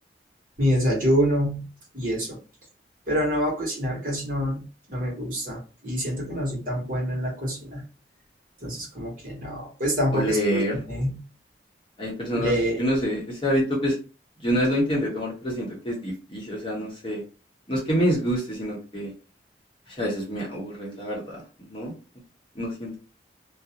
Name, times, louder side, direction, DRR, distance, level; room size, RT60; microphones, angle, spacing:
voice 1, 0.6-1.7 1.9-2.4 3.1-7.8 8.6-10.6 10.9-11.2 12.3-12.8, equal, 50° right, -2 dB, 1.0 m, -26 dB
voice 2, 10.1-10.7 12.0-13.9 14.4-17.2 17.7-19.1 19.9-21.9 22.5-23.0, equal, 30° left, -3 dB, 0.9 m, -27 dB
2.4 x 2.1 x 2.7 m, 0.34 s
head